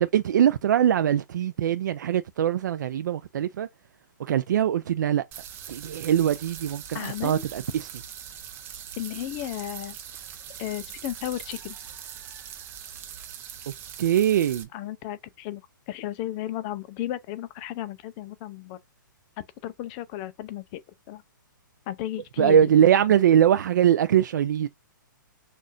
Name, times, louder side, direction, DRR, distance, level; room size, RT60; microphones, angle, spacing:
voice 1, 0.0-3.7 4.2-5.2 5.7-7.9 14.0-14.7 22.4-24.7, right 10 dB, 60° right, 0.4 m, -22 dB
sound 1, 5.3-14.6, right 9 dB, 20° right, 0.6 m, -41 dB
voice 2, 6.9-7.5 9.0-10.0 10.5-11.8 14.7-18.8 19.6-20.8 21.1-21.2 21.9-22.6, left 13 dB, 25° left, 0.5 m, -34 dB
6.2 x 2.5 x 2.6 m
hypercardioid pair, 150°, 11 cm